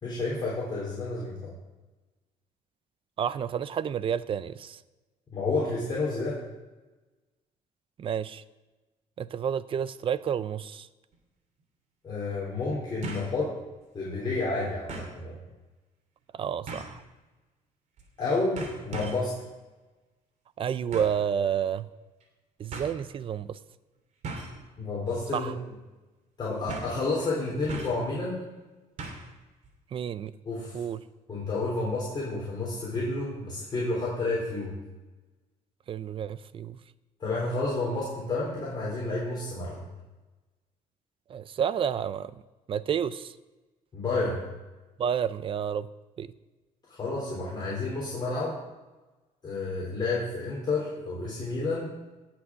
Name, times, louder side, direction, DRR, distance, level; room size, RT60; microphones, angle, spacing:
voice 1, 0.0-1.5 5.3-6.4 12.0-13.5 13.9-15.3 18.2-19.3 24.8-25.5 26.4-28.4 30.4-30.8 31.3-34.8 37.2-39.8 43.9-44.4 47.0-48.6 49.4-51.9, left 3 dB, 30° left, -6 dB, 3.9 m, -30 dB
voice 2, 3.2-4.8 8.0-8.4 9.2-10.9 16.3-17.0 20.6-21.9 22.6-23.6 25.3-25.5 29.9-30.3 30.7-31.0 35.9-36.8 41.3-42.3 42.7-43.3 45.0-45.9 46.2-46.3, right 8 dB, 40° right, 16 dB, 0.5 m, -30 dB
sound 1, 11.1-11.2 13.0-13.4 13.8-13.9 14.9-15.2 16.7-17.0 18.0-18.2 18.6-19.3 20.9-21.2 22.2-22.3 22.7-22.9 24.2-24.6 25.1-25.4 25.6-25.7 26.7-27.0 27.7-28.1 29.0-29.3 29.6-29.7, right 3 dB, 55° right, 2.8 m, -39 dB
18.0 x 6.2 x 6.4 m, 1.2 s
cardioid pair, 145°, 14 cm